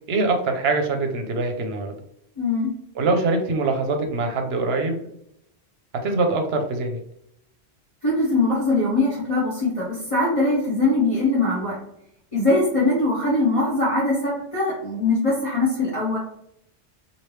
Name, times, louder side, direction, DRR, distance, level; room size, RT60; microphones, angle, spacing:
voice 1, 0.1-1.9 3.0-5.0 5.9-7.0, right 3 dB, 70° right, 5 dB, 0.8 m, -23 dB
voice 2, 2.4-2.7 8.0-11.8 12.3-16.2, left 2 dB, 35° left, -7 dB, 0.8 m, -22 dB
3.1 x 2.6 x 3.0 m, 0.76 s
omnidirectional pair, 1.1 m